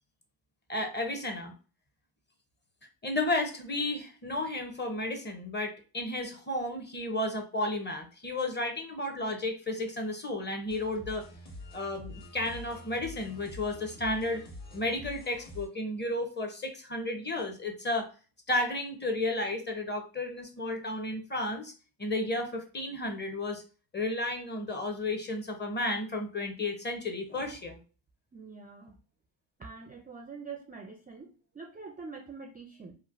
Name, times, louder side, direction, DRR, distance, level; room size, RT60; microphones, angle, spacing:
voice 1, 0.7-1.5 3.0-11.3 11.7-14.4 14.7-18.1 18.5-21.7 22.0-23.6 23.9-27.8, left 2 dB, 20° left, 4 dB, 0.8 m, -33 dB
sound 1, 10.7-15.7, left 1 dB, 40° left, 1.4 m, -46 dB
voice 2, 28.3-29.0 29.6-32.9, right 4 dB, 20° right, 2 dB, 0.4 m, -45 dB
3.1 x 2.1 x 2.4 m, 0.35 s
supercardioid pair, 65°, 47 cm